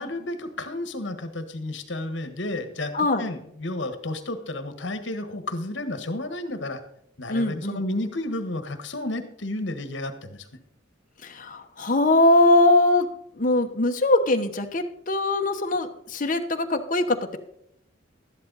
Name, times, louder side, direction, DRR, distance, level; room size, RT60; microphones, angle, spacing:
voice 1, 0.0-6.8 7.2-10.5, left 2 dB, 65° left, 9 dB, 1.5 m, -32 dB
voice 2, 7.3-7.8 11.2-13.1 13.4-17.4, left 2 dB, 40° left, 5 dB, 1.0 m, -21 dB
12.5 x 11.0 x 4.1 m, 0.73 s
head